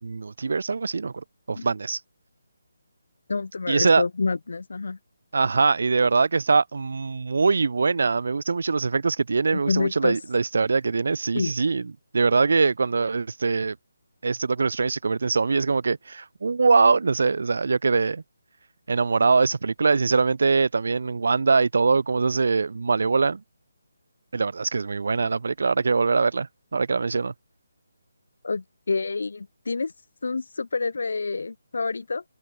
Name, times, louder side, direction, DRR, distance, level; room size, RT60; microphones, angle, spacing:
voice 1, 0.0-2.0 3.7-4.0 5.3-13.8 14.2-18.2 18.9-23.4 24.3-27.3, right 4 dB, 65° right, 3.9 m, -23 dB
voice 2, 3.3-5.0 9.5-10.2 11.3-11.5 28.4-29.9 30.2-32.2, left 4 dB, 70° left, 2.1 m, -28 dB
hypercardioid pair, 170°, 0 cm